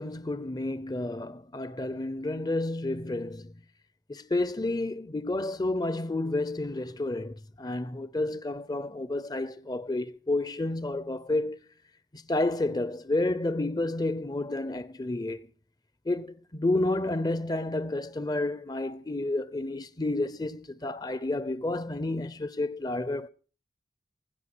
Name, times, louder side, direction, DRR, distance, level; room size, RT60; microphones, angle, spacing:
voice 1, 0.0-3.5 4.1-11.6 12.1-15.5 16.1-23.3, left 2 dB, 20° left, 0.6 m, -30 dB
16.0 x 12.5 x 6.0 m
head